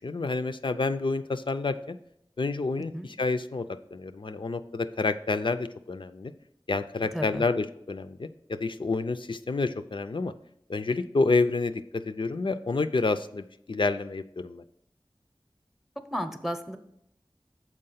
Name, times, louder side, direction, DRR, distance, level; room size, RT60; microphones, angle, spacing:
voice 1, 0.0-2.0 2.4-6.3 6.7-10.3 10.7-14.6, left 3 dB, 65° left, 10 dB, 0.4 m, -29 dB
voice 2, 7.1-7.4 16.1-16.8, equal, 5° right, 8 dB, 0.7 m, -32 dB
6.6 x 4.7 x 5.6 m, 0.74 s
wide cardioid pair, 45°, 9 cm